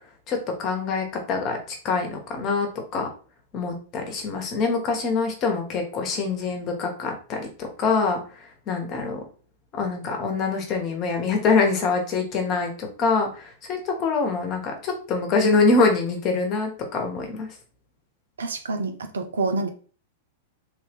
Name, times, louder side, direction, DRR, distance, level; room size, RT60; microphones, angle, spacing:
voice 1, 0.3-3.1 3.5-9.3 9.7-17.5, left 4 dB, 40° left, 1.2 m, -25 dB
voice 2, 18.4-19.7, right 3 dB, 80° right, 0.6 m, -27 dB
3.4 x 2.7 x 3.5 m
hypercardioid pair, 105°, 0 cm